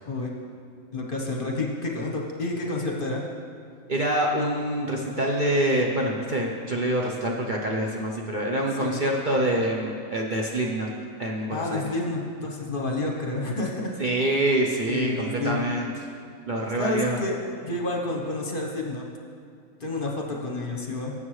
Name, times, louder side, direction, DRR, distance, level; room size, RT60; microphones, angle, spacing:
voice 1, 0.9-3.2 8.8-9.0 11.5-13.9 14.9-15.7 16.8-17.3 17.6-19.1 19.8-21.1, left 2 dB, 40° left, 0 dB, 1.1 m, -29 dB
voice 2, 3.9-10.9 11.2-11.8 14.0-15.9 16.5-17.2, right 1 dB, 45° right, -1 dB, 0.8 m, -26 dB
17.5 x 7.4 x 3.2 m, 2.2 s
omnidirectional pair, 1.4 m